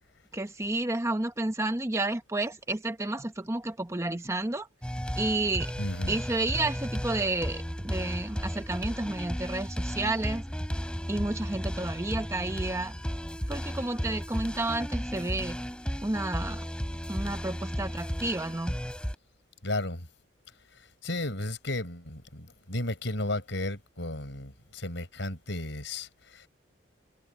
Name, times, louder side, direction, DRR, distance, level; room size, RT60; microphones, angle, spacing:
voice 1, 0.3-4.7 5.2-5.7 6.1-10.4 11.1-12.9 13.5-15.6 16.0-16.7 17.1-18.8, right 2 dB, 15° right, 0.8 m, -31 dB
sound 1, 4.8-19.2, equal, 5° left, 4.1 m, -34 dB
voice 2, 5.8-6.2 19.6-20.1 20.7-26.5, left 1 dB, 65° left, 6.7 m, -34 dB
head